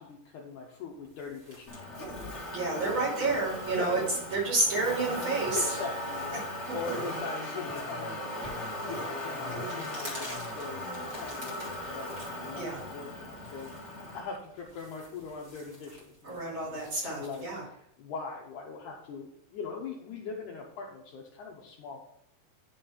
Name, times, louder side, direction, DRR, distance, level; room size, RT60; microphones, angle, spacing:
voice 1, 0.0-2.1 2.3-3.3 3.8-4.1 5.5-8.2 8.8-22.0, left 5 dB, 75° left, -1 dB, 1.9 m, -41 dB
sound 1, 0.9-17.6, equal, 30° right, 1.3 m, -51 dB
Motor vehicle (road), 1.7-14.2, left 1 dB, 45° left, 0.9 m, -38 dB
voice 2, 2.5-4.0 4.3-5.7 12.5-12.8 16.2-17.6, right 3 dB, 55° right, -7 dB, 3.8 m, -29 dB
9.7 x 3.9 x 4.2 m, 0.73 s
omnidirectional pair, 4.3 m